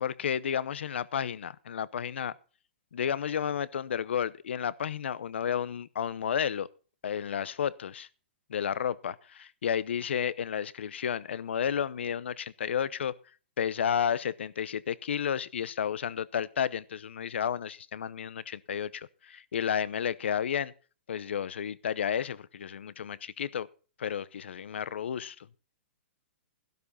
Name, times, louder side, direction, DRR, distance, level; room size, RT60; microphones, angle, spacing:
voice 1, 0.0-2.3 2.9-6.7 7.0-8.1 8.5-13.1 13.6-20.7 21.1-23.7 24.0-25.4, left 8 dB, 80° left, 0.8 m, -32 dB
13.0 x 12.0 x 4.1 m
hypercardioid pair, 155°, 6 cm